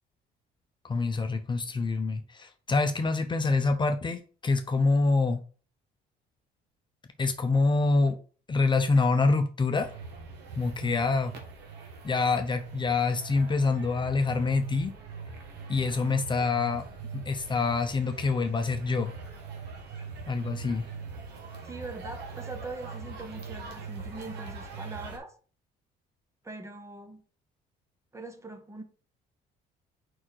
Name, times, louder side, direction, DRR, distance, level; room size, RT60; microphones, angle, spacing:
voice 1, 0.8-5.4 7.2-8.2 8.5-9.9 10.6-11.3 12.0-14.9 15.7-16.8 17.1-19.1 20.3-20.8, left 3 dB, 25° left, 0.8 m, -26 dB
sound 1, 9.7-25.2, right 4 dB, 80° right, 1.6 m, -42 dB
voice 2, 21.6-25.3 26.4-27.2 28.1-28.8, right 3 dB, 15° right, 0.9 m, -42 dB
4.9 x 4.3 x 4.6 m
cardioid pair, 110°, 17 cm